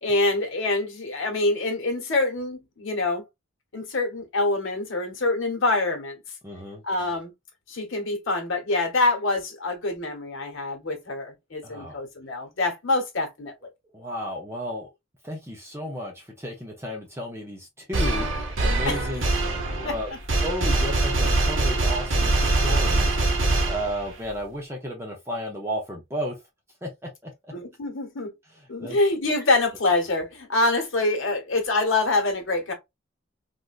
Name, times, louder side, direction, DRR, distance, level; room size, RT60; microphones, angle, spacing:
voice 1, 0.0-3.2 3.7-6.2 6.8-7.3 7.7-13.5 18.8-19.0 19.8-19.9 27.5-28.3 28.7-32.7, left 2 dB, 70° left, 1.1 m, -25 dB
voice 2, 6.4-6.8 11.6-12.0 13.9-14.9 15.2-19.2 19.7-20.1 20.4-26.4 26.8-27.3 28.8-29.0, equal, 10° right, 0.6 m, -33 dB
sound 1, 17.9-24.3, right 2 dB, 65° right, 0.9 m, -23 dB
3.4 x 2.5 x 2.4 m
head